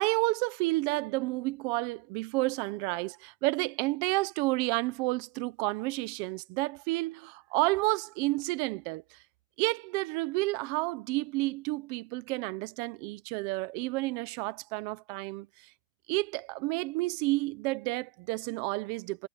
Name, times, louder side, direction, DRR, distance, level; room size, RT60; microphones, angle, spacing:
voice 1, 0.0-9.2 9.6-15.7 16.1-19.3, right 22 dB, 30° right, 0.9 m, -30 dB
supercardioid pair, 175°, 15 cm